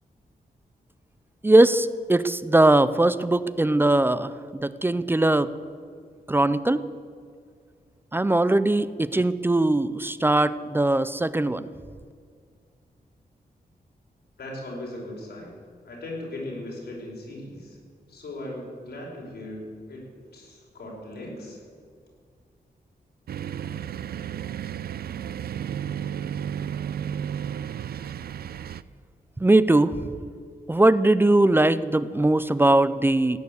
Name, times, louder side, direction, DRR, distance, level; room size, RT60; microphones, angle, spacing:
voice 1, 1.4-5.5 6.3-6.8 8.1-11.7 29.4-30.1 30.7-33.4, right 2 dB, 15° right, 15 dB, 0.5 m, -20 dB
voice 2, 14.4-15.6 15.8-17.8 18.1-20.0 20.3-21.6, left 1 dB, 80° left, -2 dB, 5.2 m, -38 dB
sound 1, 23.3-28.8, right 9 dB, 70° right, 0.5 m, -33 dB
16.5 x 9.6 x 8.0 m, 2.1 s
wide cardioid pair, 145°, 16 cm